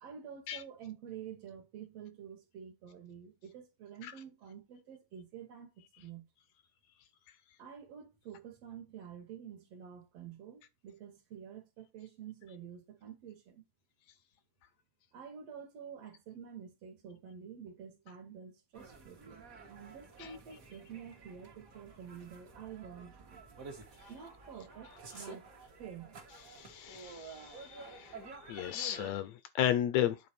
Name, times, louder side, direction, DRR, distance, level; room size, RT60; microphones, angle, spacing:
voice 1, 0.0-6.3 7.6-13.6 15.1-23.4 24.1-25.5 25.8-26.2, right 8 dB, 65° right, 2.2 m, -49 dB
sound 1, 18.7-29.1, right 3 dB, 40° right, 1.3 m, -51 dB
voice 2, 26.5-30.2, left 11 dB, 80° left, 1.7 m, -34 dB
9.3 x 3.9 x 4.3 m
omnidirectional pair, 3.3 m